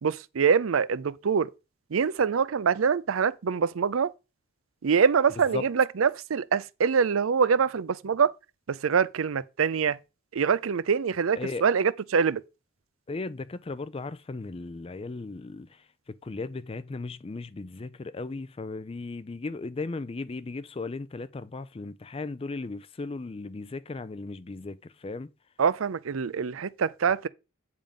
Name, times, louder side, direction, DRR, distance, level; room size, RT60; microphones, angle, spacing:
voice 1, 0.0-1.5 1.9-4.1 4.8-8.3 8.7-10.0 10.3-12.4 25.6-27.3, right 6 dB, 90° right, 0.5 m, -24 dB
voice 2, 13.1-15.7 16.1-25.3, left 3 dB, 30° left, 0.4 m, -36 dB
8.7 x 3.7 x 5.2 m
head